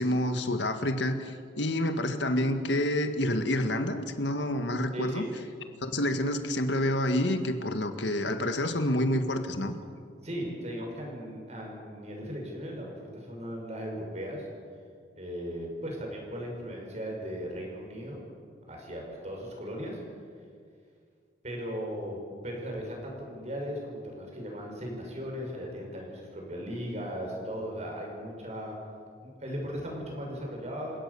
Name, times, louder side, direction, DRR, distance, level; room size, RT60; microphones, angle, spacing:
voice 1, 0.0-5.2 5.8-9.7, left 1 dB, 80° left, 7 dB, 1.8 m, -28 dB
voice 2, 4.9-5.3 10.2-14.5 15.1-18.2 18.7-20.0 21.4-28.8 29.2-31.0, equal, 40° right, 0 dB, 6.5 m, -37 dB
28.5 x 17.0 x 7.0 m, 2.1 s
head